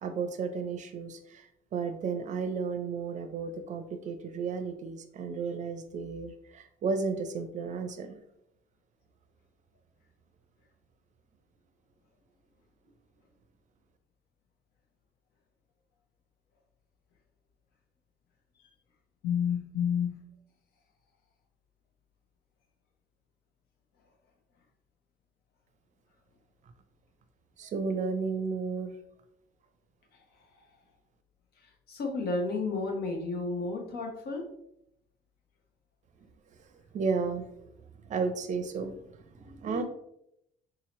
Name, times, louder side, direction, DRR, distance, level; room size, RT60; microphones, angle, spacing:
voice 1, 0.0-8.2 27.6-28.9 36.9-37.5 38.1-39.8, right 5 dB, 45° right, 8 dB, 0.5 m, -33 dB
voice 2, 19.2-20.2 31.9-34.4, left 5 dB, 70° left, 2 dB, 1.0 m, -31 dB
3.9 x 2.9 x 3.0 m, 0.77 s
cardioid pair, 110°, 17 cm